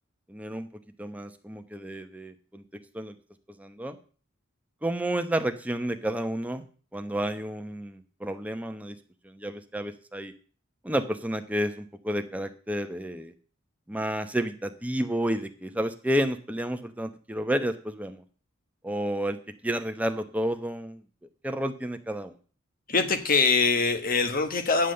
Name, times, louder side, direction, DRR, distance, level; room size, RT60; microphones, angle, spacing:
voice 1, 0.3-0.7 1.0-2.6 2.9-3.1 3.6-4.0 4.8-6.6 6.9-9.0 9.2-10.3 10.8-13.3 13.9-18.2 18.8-19.4 19.6-21.0 21.4-22.3, right 1 dB, 5° right, 7 dB, 0.8 m, -30 dB
voice 2, 22.9-24.9, left 4 dB, 45° left, 8 dB, 1.3 m, -23 dB
10.0 x 7.5 x 7.7 m, 0.40 s
head